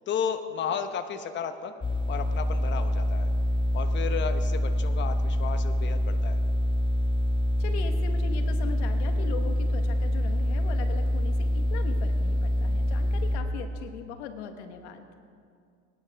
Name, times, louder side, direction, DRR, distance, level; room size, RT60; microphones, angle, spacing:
voice 1, 0.1-1.7 2.1-3.3 3.7-6.4, left 7 dB, 35° left, 8 dB, 0.9 m, -33 dB
sound 1, 1.8-13.4, left 1 dB, 15° left, 1.2 m, -26 dB
voice 2, 7.6-15.0, left 7 dB, 85° left, 7 dB, 1.3 m, -39 dB
23.5 x 10.5 x 3.5 m, 2.3 s
supercardioid pair, 100°, 33 cm